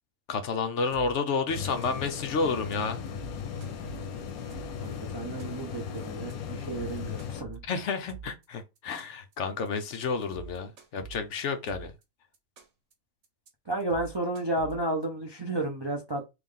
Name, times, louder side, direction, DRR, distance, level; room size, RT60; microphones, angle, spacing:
voice 1, 0.3-3.0 7.6-11.9, left 4 dB, 65° left, 0.9 m, -30 dB
sound 1, 0.9-1.3 1.6-2.2 2.5-2.7 3.1-4.9 5.2-5.8 6.1-6.3 6.6-8.4 8.8-9.3 9.6-9.9 10.2-12.0 12.3-12.9 13.2-13.5 13.8-15.0, right 5 dB, 55° right, 1.2 m, -46 dB
sound 2, 1.5-7.4, left 7 dB, 90° left, 1.1 m, -37 dB
voice 2, 4.8-7.6 13.7-16.2, right 2 dB, 40° right, 0.3 m, -32 dB
3.4 x 2.5 x 3.6 m
omnidirectional pair, 1.5 m